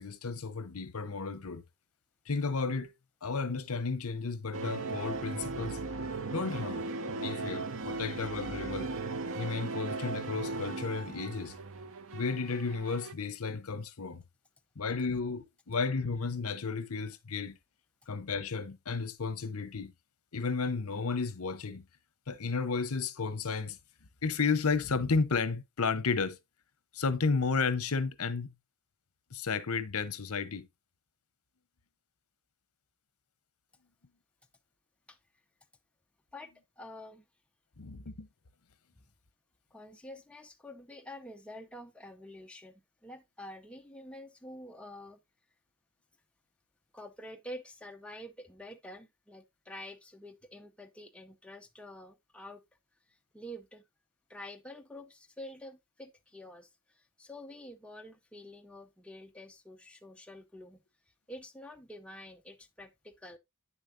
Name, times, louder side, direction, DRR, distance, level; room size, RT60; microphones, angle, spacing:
voice 1, 0.0-1.6 2.3-2.9 3.2-5.8 6.3-8.9 9.3-11.5 12.1-14.2 14.8-17.6 18.1-19.9 20.3-21.8 22.3-23.8 24.2-26.4 26.9-28.5 29.3-30.7 37.8-38.3, left 4 dB, 70° left, 0.9 m, -33 dB
sound 1, 4.5-13.1, right 3 dB, 65° right, 0.9 m, -37 dB
voice 2, 36.3-37.2 39.7-45.2 46.9-52.6 53.1-53.8 54.3-60.8 61.3-63.4, left 1 dB, 5° left, 0.6 m, -48 dB
9.2 x 7.0 x 2.6 m
head